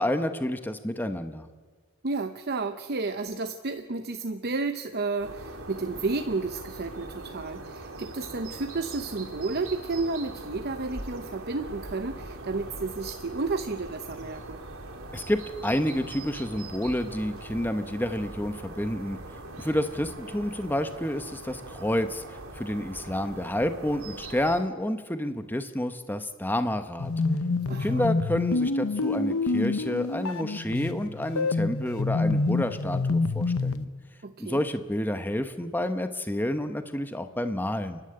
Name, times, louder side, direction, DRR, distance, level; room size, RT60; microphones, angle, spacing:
voice 1, 0.0-1.5 15.1-19.2 19.6-27.1 27.8-33.9 34.4-38.0, left 1 dB, 10° left, 8 dB, 0.9 m, -29 dB
voice 2, 2.0-14.6 27.7-28.1 34.2-34.7, right 3 dB, 45° right, 8 dB, 0.8 m, -32 dB
sound 1, 5.2-24.6, right 2 dB, 75° right, 3.4 m, -41 dB
sound 2, 27.0-33.8, left 3 dB, 80° left, 0.9 m, -27 dB
30.0 x 11.5 x 8.7 m, 1.5 s
head